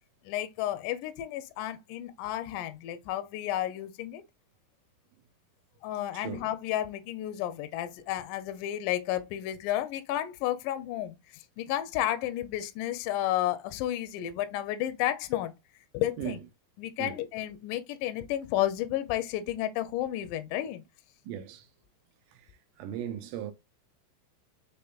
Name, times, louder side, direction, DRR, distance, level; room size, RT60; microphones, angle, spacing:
voice 1, 0.3-4.2 5.8-15.5 15.9-16.4 16.8-20.8, left 13 dB, 80° left, 1.9 m, -32 dB
voice 2, 6.1-6.5 16.2-16.4 17.0-17.2 21.3-21.7 22.3-22.5 22.8-23.5, right 10 dB, 85° right, 1.8 m, -37 dB
5.6 x 3.4 x 2.3 m
omnidirectional pair, 4.2 m